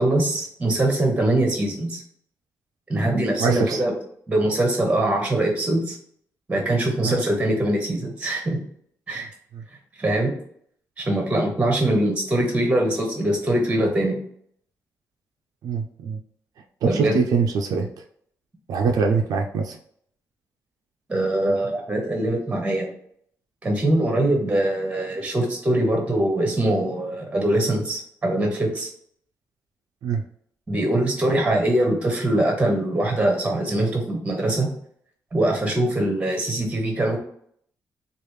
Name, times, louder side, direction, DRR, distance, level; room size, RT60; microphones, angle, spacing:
voice 1, 0.0-2.0 2.9-3.9 4.3-6.0 6.5-8.6 9.1-9.3 10.0-10.3 11.0-14.2 16.8-17.2 21.1-22.9 23.6-28.9 30.7-34.7 35.3-37.2, right 1 dB, 20° right, 1 dB, 0.9 m, -22 dB
voice 2, 3.4-3.8 7.0-7.2 15.6-16.2 16.9-17.9 18.7-19.8 30.0-30.2, right 5 dB, 80° right, 1 dB, 0.4 m, -23 dB
3.2 x 2.4 x 3.2 m, 0.66 s
cardioid pair, 115°, 6 cm